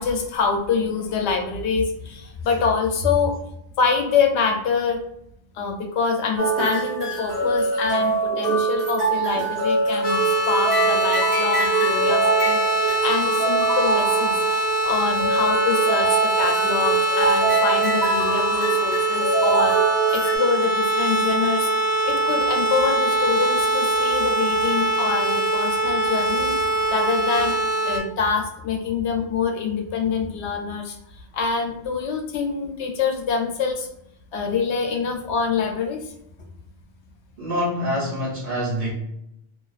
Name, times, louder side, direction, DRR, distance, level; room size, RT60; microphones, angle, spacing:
voice 1, 0.0-3.4 3.8-5.0 5.5-10.2 10.5-14.3 14.8-19.8 20.1-21.7 22.0-27.6 27.8-33.9 34.3-36.1, left 5 dB, 75° left, 2 dB, 0.8 m, -25 dB
sound 1, 6.4-20.4, right 4 dB, 65° right, 1.3 m, -23 dB
sound 2, 10.0-28.0, right 2 dB, 35° left, 0.4 m, -23 dB
voice 2, 37.4-38.9, equal, 45° right, -6 dB, 1.0 m, -25 dB
2.4 x 2.3 x 2.3 m, 0.78 s
omnidirectional pair, 1.2 m